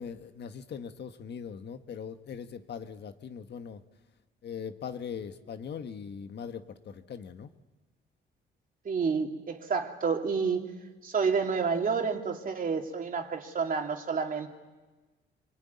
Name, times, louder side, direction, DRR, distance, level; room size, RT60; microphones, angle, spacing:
voice 1, 0.0-3.8 4.4-7.5, left 7 dB, 60° left, 8 dB, 1.5 m, -40 dB
voice 2, 8.8-10.6 11.0-14.5, right 5 dB, 45° right, 3 dB, 2.9 m, -29 dB
26.0 x 22.5 x 9.6 m, 1.2 s
cardioid pair, 90°, 20 cm